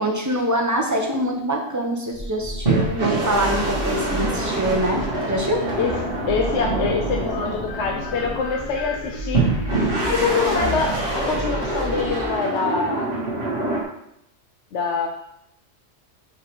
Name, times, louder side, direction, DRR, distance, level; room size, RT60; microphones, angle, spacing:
voice 1, 0.0-5.6, right 1 dB, 15° right, 1 dB, 0.8 m, -24 dB
sound 1, 2.1-12.3, left 1 dB, 30° left, 1.1 m, -32 dB
sound 2, 2.6-8.6 9.3-13.8, right 2 dB, 45° right, 1.8 m, -25 dB
voice 2, 6.3-9.4 10.0-13.1 14.7-15.1, left 5 dB, 70° left, 2 dB, 0.9 m, -25 dB
4.9 x 4.7 x 4.7 m, 0.75 s
omnidirectional pair, 1.3 m